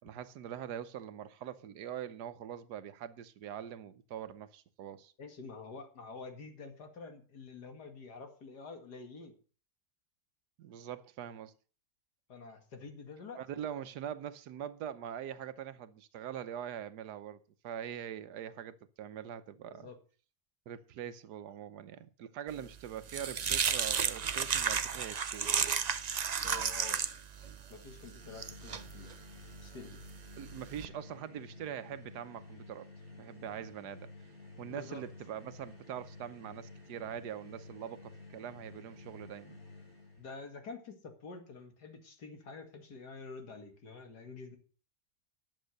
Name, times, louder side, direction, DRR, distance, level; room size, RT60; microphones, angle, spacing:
voice 1, 0.0-5.1 10.6-11.5 13.4-19.9 20.7-25.7 30.4-32.9 33.2-34.1 34.6-39.6, right 9 dB, 90° right, 1.4 m, -43 dB
voice 2, 5.2-9.3 12.3-13.4 19.6-20.0 22.6-22.7 26.4-27.0 27.7-29.1 29.6-30.0 34.7-35.0 40.2-44.6, left 4 dB, 85° left, 2.7 m, -48 dB
sound 1, 22.6-30.8, right 6 dB, 65° right, 0.4 m, -34 dB
sound 2, 27.7-40.3, left 3 dB, 60° left, 7.1 m, -52 dB
11.0 x 7.7 x 6.5 m
omnidirectional pair, 1.7 m